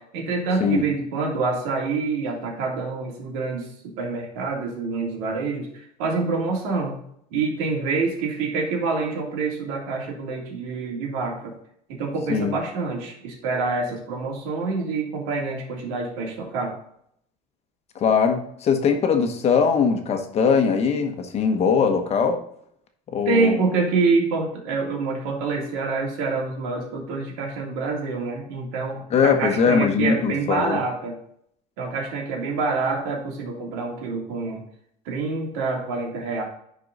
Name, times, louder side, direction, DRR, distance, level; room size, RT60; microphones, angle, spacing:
voice 1, 0.0-3.7 4.0-7.0 7.3-11.5 11.9-16.7 23.2-31.1 31.8-34.6 35.0-36.4, right 4 dB, 85° right, -1 dB, 3.0 m, -26 dB
voice 2, 17.9-22.4 23.1-23.6 29.1-30.8, left 6 dB, 35° left, 6 dB, 1.1 m, -21 dB
10.5 x 4.8 x 4.0 m, 0.68 s
cardioid pair, 140°, 18 cm